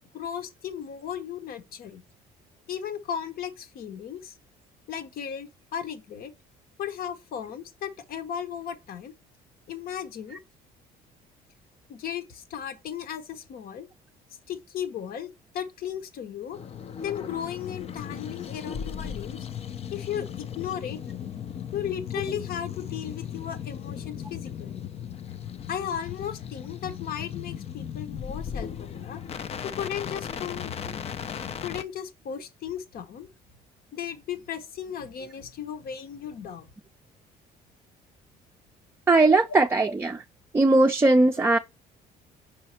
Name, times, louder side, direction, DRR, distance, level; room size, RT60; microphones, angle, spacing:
voice 1, 0.1-2.0 2.7-4.4 4.9-6.3 6.8-9.1 9.7-10.4 11.9-13.9 14.5-16.6 17.0-19.5 19.9-21.0 21.7-24.8 25.7-29.2 29.6-30.7 31.6-33.3 33.9-36.7, left 9 dB, 60° left, 1.1 m, -35 dB
sound 1, 16.5-31.8, left 8 dB, 40° left, 0.5 m, -37 dB
voice 2, 39.1-40.2 40.5-41.6, right 2 dB, 15° right, 0.5 m, -19 dB
5.6 x 4.1 x 4.2 m
cardioid pair, 110°, 17 cm